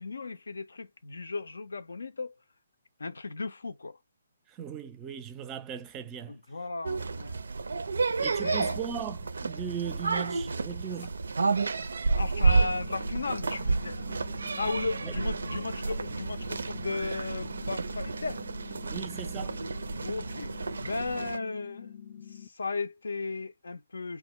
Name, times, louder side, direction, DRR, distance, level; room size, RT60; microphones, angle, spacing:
voice 1, 0.0-2.4 3.0-4.0 6.3-7.4 8.4-8.7 12.2-14.1 14.6-18.4 20.0-20.6 20.8-24.2, left 3 dB, 85° left, 0.5 m, -35 dB
voice 2, 4.5-6.3 8.2-11.2 15.0-15.1 18.9-19.6, right 8 dB, 20° right, 0.4 m, -38 dB
sound 1, 6.8-21.4, right 4 dB, 80° right, 0.4 m, -31 dB
sound 2, 12.5-22.5, left 9 dB, 35° left, 0.5 m, -47 dB
2.3 x 2.1 x 2.9 m
hypercardioid pair, 150°, 0 cm